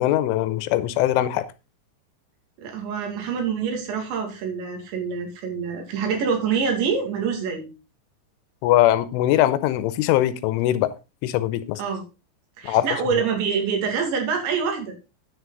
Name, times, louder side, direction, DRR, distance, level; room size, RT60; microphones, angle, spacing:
voice 1, 0.0-1.5 8.6-10.9 11.2-11.8 12.6-12.9, left 13 dB, 85° left, 3.2 m, -21 dB
voice 2, 2.6-7.7 11.8-12.0 12.6-14.9, right 6 dB, 65° right, 4.5 m, -26 dB
9.9 x 8.2 x 4.0 m
omnidirectional pair, 5.7 m